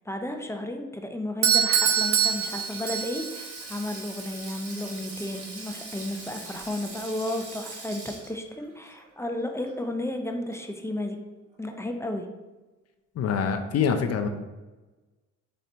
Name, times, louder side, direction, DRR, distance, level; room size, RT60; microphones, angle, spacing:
voice 1, 0.1-11.2 11.6-12.3, left 1 dB, 10° left, 4 dB, 0.5 m, -33 dB
Doorbell, 1.4-3.4, right 8 dB, 45° right, 0.6 m, -24 dB
Sink (filling or washing), 1.6-10.0 10.3-10.5 11.7-12.0, right 3 dB, 75° right, 1.4 m, -42 dB
voice 2, 13.1-14.3, left 6 dB, 55° left, 6 dB, 0.5 m, -25 dB
4.3 x 3.7 x 3.3 m, 1.2 s
cardioid pair, 90°, 30 cm